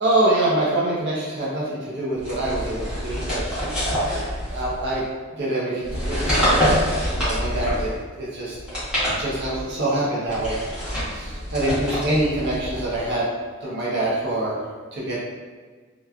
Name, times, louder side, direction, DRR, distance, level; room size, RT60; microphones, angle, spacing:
voice 1, 0.0-3.4 4.5-5.0 5.4-8.6 9.2-13.2 13.6-14.6 14.9-15.2, right 1 dB, 50° right, -6 dB, 0.6 m, -25 dB
sound 1, 2.2-5.0 5.8-8.0 8.6-9.7 10.3-13.1, equal, 5° right, 0.9 m, -26 dB
2.9 x 2.3 x 2.3 m, 1.4 s
head